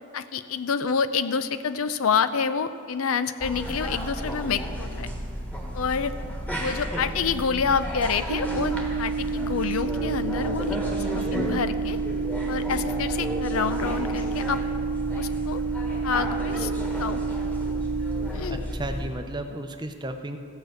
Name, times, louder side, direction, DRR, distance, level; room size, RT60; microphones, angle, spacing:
voice 1, 0.1-5.1 5.7-6.1 6.6-10.8 11.1-12.0 12.5-14.6 15.1-15.6 16.0-16.7 17.0-17.2 18.3-18.6, left 6 dB, 80° left, 13 dB, 0.5 m, -27 dB
sound 1, 3.4-19.1, equal, 5° left, 1.4 m, -32 dB
sound 2, 8.3-18.3, right 5 dB, 55° right, 1.0 m, -30 dB
voice 2, 18.5-20.4, right 1 dB, 20° right, 6 dB, 0.6 m, -34 dB
14.5 x 5.8 x 7.8 m, 2.3 s
head